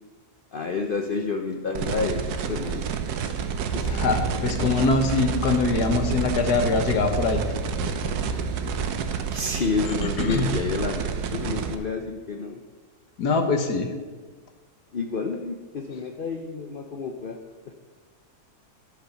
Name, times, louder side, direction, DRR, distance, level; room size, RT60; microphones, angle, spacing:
voice 1, 0.5-2.9 3.7-4.6 9.2-12.6 14.9-17.4 17.7-17.8, left 4 dB, 55° left, 4 dB, 0.6 m, -30 dB
sound 1, 1.7-11.7, right 7 dB, 80° right, 1.3 m, -29 dB
sound 2, 3.6-8.9, left 1 dB, 50° right, 2.3 m, -34 dB
voice 2, 3.8-7.4 9.9-10.5 13.2-13.9, left 3 dB, 85° left, 6 dB, 1.7 m, -23 dB
11.0 x 8.3 x 5.7 m, 1.4 s
omnidirectional pair, 1.7 m